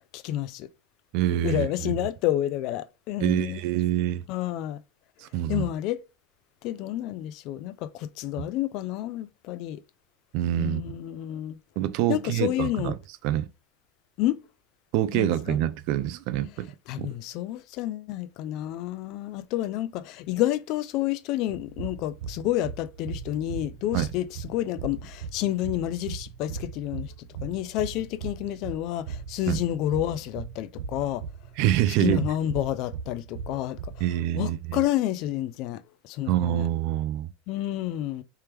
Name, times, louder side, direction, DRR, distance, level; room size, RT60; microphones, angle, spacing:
voice 1, 0.1-0.7 1.4-3.6 4.3-4.8 5.5-6.0 6.6-9.8 10.6-11.6 12.1-13.0 14.2-14.4 15.1-15.6 16.9-27.1 27.4-31.2 32.0-33.8 34.3-36.7 37.5-38.2, left 13 dB, 45° left, 0.3 m, -29 dB
voice 2, 1.1-1.9 3.2-4.2 5.2-5.7 8.4-8.5 10.3-10.8 11.8-13.0 13.2-13.5 14.9-16.7 17.0-17.1 23.9-24.1 29.5-29.6 31.6-32.3 34.0-34.8 36.3-37.3, right 13 dB, 50° right, 0.3 m, -26 dB
sound 1, 21.5-34.1, right 6 dB, 75° right, 0.7 m, -38 dB
3.3 x 3.0 x 3.3 m
supercardioid pair, 150°, 0 cm